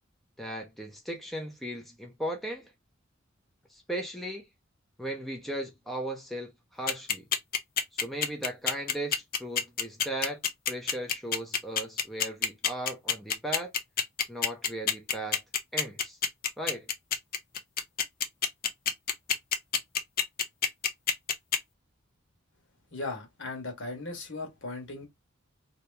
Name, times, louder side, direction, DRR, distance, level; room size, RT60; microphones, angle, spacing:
voice 1, 0.4-2.7 3.7-4.4 5.0-7.3 7.9-10.4 10.7-13.7 14.3-15.4 15.7-16.2 16.6-16.9, right 1 dB, ahead, 0.7 m, -37 dB
sound 1, 6.9-21.6, left 8 dB, 45° left, 0.6 m, -26 dB
voice 2, 22.9-25.1, left 2 dB, 65° left, 1.4 m, -37 dB
2.9 x 2.8 x 3.3 m
head